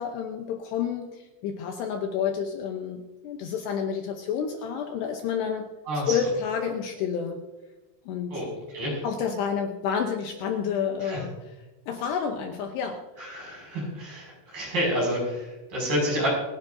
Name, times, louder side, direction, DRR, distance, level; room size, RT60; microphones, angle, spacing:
voice 1, 0.0-5.7 5.9-7.4 8.1-8.4 9.0-11.6 11.9-13.0, left 7 dB, 75° left, 4 dB, 2.7 m, -29 dB
voice 2, 5.9-6.2 8.3-8.5 8.7-9.0 11.0-11.2 13.2-16.3, equal, 50° right, -3 dB, 7.6 m, -29 dB
28.5 x 11.0 x 2.7 m, 1.1 s
omnidirectional pair, 5.5 m